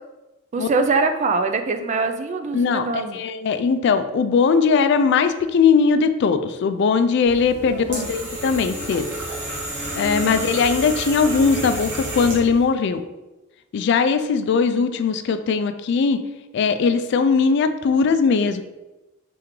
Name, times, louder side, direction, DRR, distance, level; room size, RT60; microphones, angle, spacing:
voice 1, 0.5-3.2 7.7-8.1 10.2-10.5, right 4 dB, 35° right, 7 dB, 0.3 m, -23 dB
voice 2, 2.5-2.9 3.1-9.1 9.9-13.0 13.7-16.2 16.5-18.6, left 5 dB, 60° left, 10 dB, 0.3 m, -19 dB
sound 1, 7.3-12.6, right 1 dB, 60° right, 1.4 m, -30 dB
3.4 x 3.0 x 3.7 m, 1.0 s
head